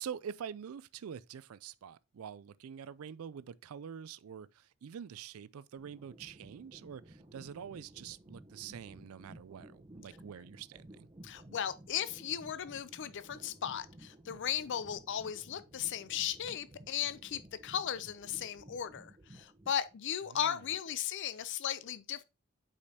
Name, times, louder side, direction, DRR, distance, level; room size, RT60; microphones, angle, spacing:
voice 1, 0.0-11.1 20.3-20.6, right 8 dB, 90° right, 0.4 m, -46 dB
underwater engine, 5.8-20.0, right 1 dB, 20° right, 0.9 m, -55 dB
voice 2, 11.2-22.2, left 9 dB, 60° left, 0.5 m, -36 dB
8.4 x 5.0 x 2.8 m
head